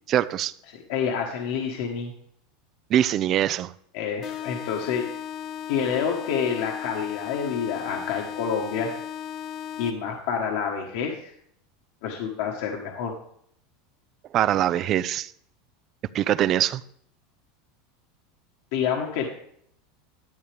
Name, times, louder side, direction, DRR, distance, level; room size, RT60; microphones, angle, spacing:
voice 1, 0.1-0.5 2.9-3.7 14.3-15.3 16.1-16.8, right 11 dB, 45° right, 19 dB, 0.4 m, -23 dB
voice 2, 0.7-2.1 3.9-5.1 5.7-8.9 9.8-11.3 12.0-13.1 18.7-19.3, left 7 dB, 70° left, 1 dB, 1.3 m, -28 dB
sound 1, 4.2-10.2, left 9 dB, 45° left, 0.7 m, -36 dB
11.0 x 8.8 x 3.4 m, 0.66 s
hypercardioid pair, 105°, 0 cm